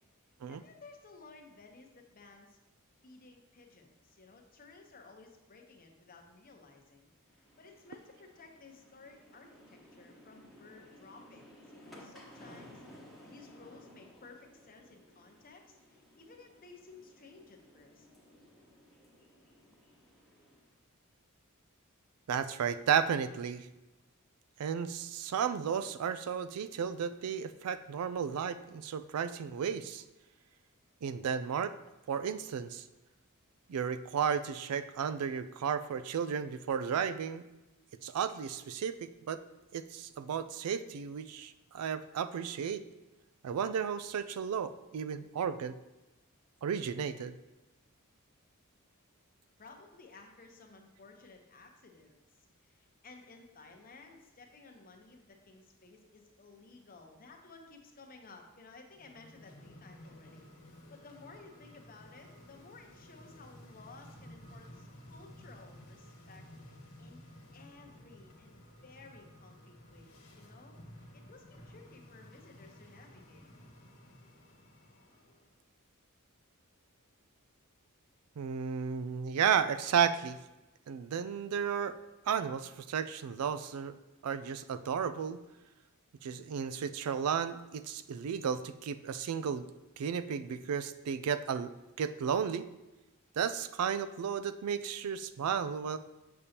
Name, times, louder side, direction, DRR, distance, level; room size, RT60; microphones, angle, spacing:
voice 1, 0.5-2.6 3.0-12.8 13.2-18.1 49.6-67.2 67.5-70.8 71.1-73.5, left 3 dB, 40° left, 3 dB, 0.9 m, -56 dB
sound 1, 7.2-20.7, left 1 dB, ahead, 1.1 m, -57 dB
voice 2, 22.3-23.7 24.6-30.0 31.0-31.7 32.1-32.8 33.7-37.4 38.0-39.4 39.7-42.8 43.4-45.8 46.6-47.3 78.4-80.4 80.9-82.0 82.3-84.0 84.2-85.4 86.2-89.7 90.0-92.7 93.4-96.0, right 7 dB, 90° right, 13 dB, 0.4 m, -33 dB
sound 2, 58.9-75.5, left 1 dB, 70° left, 1.6 m, -54 dB
6.9 x 6.5 x 2.9 m, 1.0 s
head